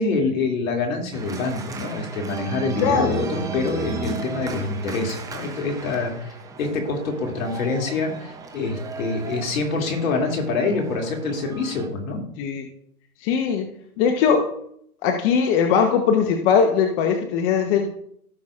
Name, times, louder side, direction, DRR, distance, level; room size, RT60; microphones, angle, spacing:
voice 1, 0.0-12.2, left 3 dB, 65° left, 2 dB, 2.7 m, -26 dB
Organ, 1.1-11.9, right 4 dB, 10° right, 0.6 m, -35 dB
voice 2, 2.8-3.1 12.4-12.6 13.2-13.7 14.0-14.4 15.0-17.9, left 6 dB, 35° left, 4 dB, 1.0 m, -20 dB
16.5 x 6.0 x 2.5 m, 0.68 s
hypercardioid pair, 135°, 44 cm